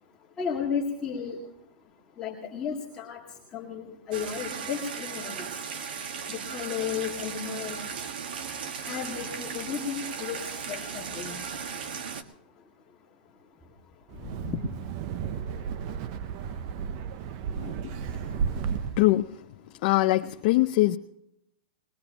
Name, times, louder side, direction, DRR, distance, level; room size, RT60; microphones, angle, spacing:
voice 1, 0.4-1.4 2.2-3.2 3.5-5.4 6.3-7.8 8.9-10.4 10.7-11.3, left 7 dB, 15° left, -5 dB, 2.0 m, -33 dB
sound 1, 4.1-12.2, right 6 dB, 70° right, 1.5 m, -36 dB
Wind, 14.1-19.2, right 7 dB, 35° right, 0.5 m, -33 dB
voice 2, 19.8-21.0, left 18 dB, 40° left, 5 dB, 0.5 m, -22 dB
21.0 x 21.0 x 2.9 m, 0.78 s
supercardioid pair, 165°, 5 cm